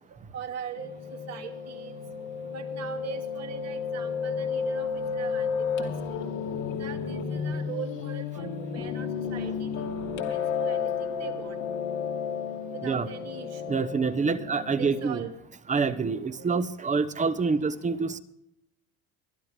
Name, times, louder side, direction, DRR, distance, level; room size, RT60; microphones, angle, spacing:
voice 1, 0.1-1.9 2.5-6.2 6.8-9.9 10.1-11.6 12.7-13.8 14.2-14.4 14.8-15.3 16.4-16.5 17.3-17.4, right 7 dB, 55° right, 4 dB, 2.5 m, -41 dB
Piano, 0.8-15.2, left 6 dB, 80° left, 2.7 m, -32 dB
voice 2, 13.7-15.2 15.7-18.2, right 4 dB, 25° right, 13 dB, 1.1 m, -26 dB
22.0 x 12.0 x 3.4 m, 0.80 s
cardioid pair, 105°, 30 cm